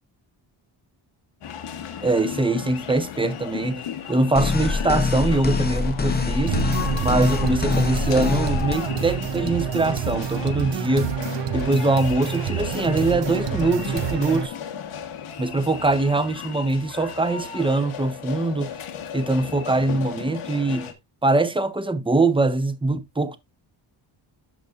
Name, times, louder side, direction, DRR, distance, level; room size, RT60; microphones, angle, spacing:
sound 1, 1.4-20.9, left 8 dB, 85° left, 1.4 m, -34 dB
voice 1, 2.0-3.8 4.1-6.6 7.0-11.1 11.5-14.5 15.4-18.8 19.1-20.9 21.2-23.4, right 2 dB, 10° right, 0.8 m, -23 dB
sound 2, 4.4-8.8, left 4 dB, 20° left, 0.8 m, -24 dB
sound 3, 6.5-14.5, right 9 dB, 60° right, 0.8 m, -28 dB
12.0 x 5.3 x 2.5 m
wide cardioid pair, 115°, 48 cm